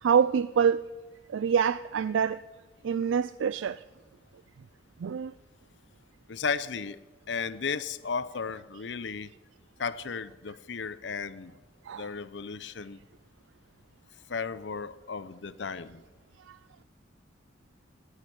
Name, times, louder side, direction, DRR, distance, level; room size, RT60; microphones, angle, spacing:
voice 1, 0.0-0.9 1.3-2.4 2.8-3.8 5.0-5.3 11.8-12.1 16.5-16.6, right 7 dB, 85° right, 0.4 m, -26 dB
voice 2, 6.3-7.0 7.3-9.3 9.8-11.5 11.9-13.0 14.3-16.0, left 5 dB, 65° left, 0.7 m, -34 dB
18.5 x 6.5 x 10.0 m
head